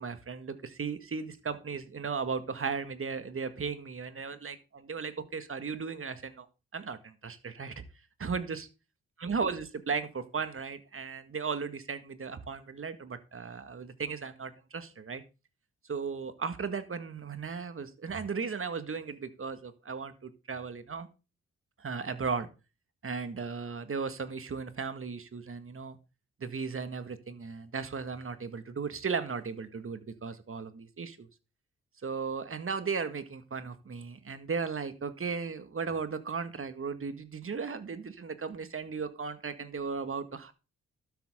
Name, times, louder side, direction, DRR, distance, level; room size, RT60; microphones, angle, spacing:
voice 1, 0.0-6.5 6.7-7.8 8.2-8.7 9.2-15.2 15.9-21.1 21.8-22.5 23.0-26.0 26.4-31.3 32.0-40.5, right 5 dB, 45° right, 11 dB, 1.9 m, -36 dB
12.5 x 8.9 x 3.8 m, 0.30 s
supercardioid pair, 45°, 30 cm